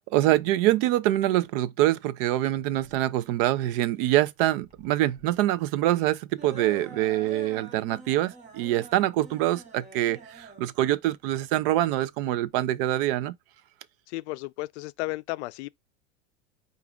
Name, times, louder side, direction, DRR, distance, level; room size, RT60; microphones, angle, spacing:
voice 1, 0.1-13.4, right 14 dB, 50° right, 0.4 m, -25 dB
sound 1, 2.6-12.6, right 3 dB, 20° right, 0.7 m, -47 dB
voice 2, 14.1-15.7, left 21 dB, 60° left, 0.5 m, -33 dB
4.8 x 2.4 x 3.6 m
supercardioid pair, 135°, 38 cm